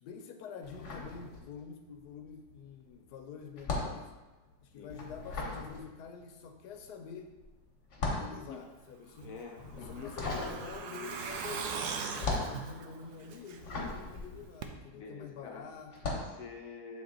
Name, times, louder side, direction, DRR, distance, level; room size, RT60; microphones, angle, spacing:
voice 1, 0.0-4.1 4.6-7.3 8.2-9.3 9.9-15.9, left 6 dB, 85° left, 6 dB, 1.2 m, -47 dB
sound 1, 0.6-1.9 2.1-15.3 15.9-16.4, left 3 dB, 50° left, 1.4 m, -38 dB
voice 2, 9.2-10.2 12.3-12.6 13.8-13.9 14.9-15.8 16.1-17.0, left 5 dB, 65° left, 1 dB, 1.0 m, -48 dB
Truck, 9.2-13.9 14.2-14.3 14.6-14.7, right 5 dB, 85° right, 1.2 m, -40 dB
7.8 x 3.5 x 3.9 m, 1.1 s
omnidirectional pair, 1.7 m